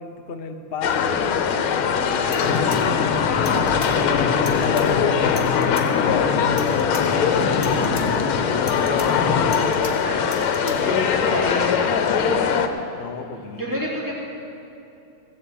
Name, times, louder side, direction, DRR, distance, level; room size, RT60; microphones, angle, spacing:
voice 1, 0.0-3.0 3.3-4.3 4.6-7.2 7.6-9.7 10.6-11.6 12.9-13.7, left 5 dB, 55° left, 5 dB, 0.6 m, -34 dB
sound 1, 0.8-12.7, left 7 dB, 85° left, 1.7 m, -21 dB
sound 2, 2.2-3.9 4.3-4.8 5.2-5.9 6.4-7.0 7.4-8.0 8.5-9.9 10.2-10.7, left 3 dB, 25° left, 1.0 m, -38 dB
sound 3, 2.4-9.6, left 4 dB, 70° left, 1.8 m, -26 dB
voice 2, 10.0-12.5 13.6-14.1, left 1 dB, 10° right, -4 dB, 2.4 m, -29 dB
16.0 x 7.8 x 7.7 m, 2.8 s
omnidirectional pair, 2.3 m